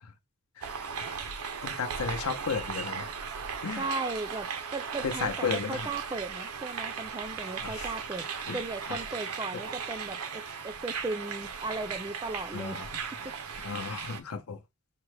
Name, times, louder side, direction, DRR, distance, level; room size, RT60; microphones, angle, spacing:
sound 1, 0.6-14.2, right 6 dB, 85° right, 0.6 m, -37 dB
voice 1, 1.6-3.1 3.6-3.8 5.0-5.9 7.6-7.9 8.5-8.6 8.9-9.0 12.5-13.0 13.6-14.6, left 5 dB, 85° left, 0.6 m, -34 dB
voice 2, 3.8-4.5 4.7-8.3 8.5-12.8 13.2-13.3, right 3 dB, 15° right, 0.3 m, -36 dB
4.7 x 2.1 x 3.1 m
head